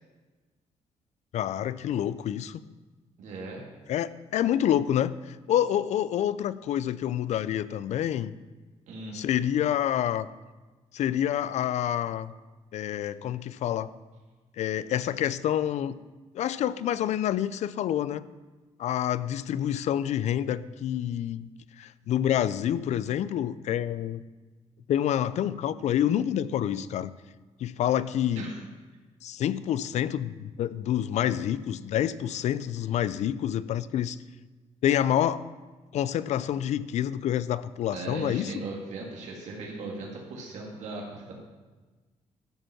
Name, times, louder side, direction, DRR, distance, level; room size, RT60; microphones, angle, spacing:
voice 1, 1.3-2.6 3.9-8.3 9.1-10.3 10.9-12.3 12.7-13.9 14.6-16.0 16.3-18.2 18.8-21.5 21.8-24.2 24.9-27.1 27.6-28.5 29.2-34.2 34.8-35.4 35.9-38.6, left 10 dB, 70° left, 17 dB, 0.4 m, -27 dB
voice 2, 3.2-3.6 8.9-9.2 28.4-28.5 37.9-41.3, right 3 dB, 75° right, -2 dB, 1.9 m, -38 dB
12.5 x 5.2 x 5.8 m, 1.3 s
cardioid pair, 120°, 12 cm